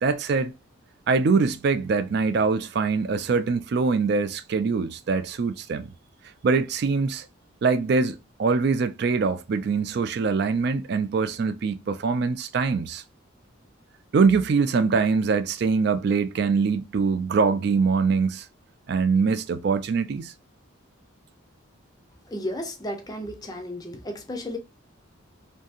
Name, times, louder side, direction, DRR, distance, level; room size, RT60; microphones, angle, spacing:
voice 1, 0.0-0.5 1.1-5.9 6.4-7.3 7.6-13.0 14.1-18.5 18.9-20.3, right 4 dB, 50° right, 0.3 m, -23 dB
voice 2, 22.3-24.6, left 1 dB, 20° left, 0.5 m, -33 dB
2.7 x 2.6 x 2.4 m
head